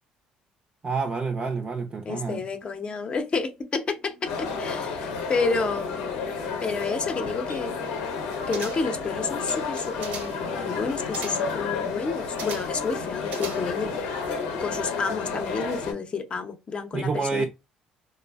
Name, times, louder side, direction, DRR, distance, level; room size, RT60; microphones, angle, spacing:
voice 1, 0.8-2.4 16.9-17.5, right 4 dB, 35° right, 0.5 m, -28 dB
voice 2, 2.1-6.2 6.6-7.8 8.5-13.9 14.5-17.5, left 4 dB, 40° left, 0.6 m, -30 dB
sound 1, 4.2-15.9, left 5 dB, 90° left, 0.7 m, -31 dB
sound 2, 8.5-9.0 9.7-10.5 11.1-11.6 12.4-12.8 13.3-13.9 14.2-14.3, right 5 dB, 70° right, 0.8 m, -39 dB
3.2 x 2.1 x 2.2 m
supercardioid pair, 70°, 3 cm